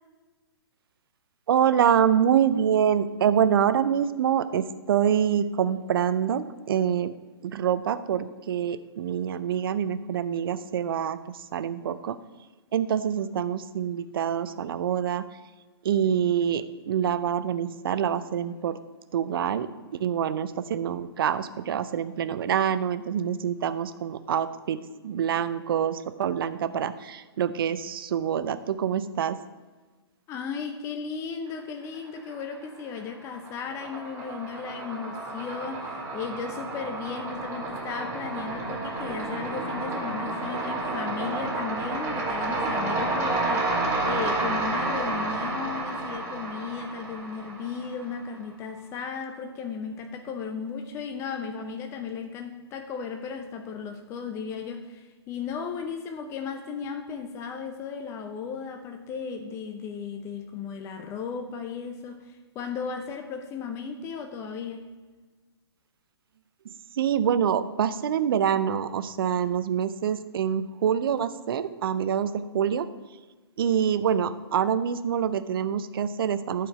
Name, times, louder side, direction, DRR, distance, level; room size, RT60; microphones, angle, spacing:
voice 1, 1.5-7.1 7.4-12.2 12.7-15.2 15.8-18.8 19.1-19.7 20.0-24.8 25.0-29.4 66.6-72.9 73.6-76.7, right 8 dB, 55° right, 13 dB, 0.5 m, -26 dB
voice 2, 30.3-64.9, left 6 dB, 20° left, 5 dB, 0.6 m, -35 dB
sound 1, 31.9-32.7 33.0-48.2, right 2 dB, 20° right, 2.3 m, -31 dB
11.0 x 4.6 x 4.8 m, 1.3 s
hypercardioid pair, 130°, 14 cm